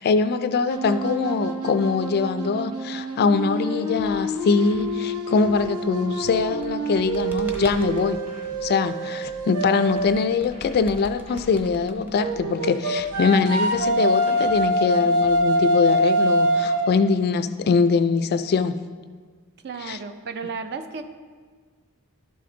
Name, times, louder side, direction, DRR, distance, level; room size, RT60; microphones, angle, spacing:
voice 1, 0.0-8.2 8.6-18.8 19.8-20.0, left 5 dB, 45° left, 12 dB, 0.3 m, -23 dB
sound 1, 0.7-10.3 12.2-17.1, equal, 80° right, 0.8 m, -25 dB
sound 2, 4.0-6.4 7.0-9.4 10.0-12.4 13.0-15.4, equal, 30° right, 1.3 m, -47 dB
sound 3, 6.4-8.1 9.9-12.5, equal, 10° right, 0.9 m, -41 dB
voice 2, 19.6-21.0, right 5 dB, 50° right, 9 dB, 0.5 m, -33 dB
12.0 x 5.0 x 3.8 m, 1.5 s
head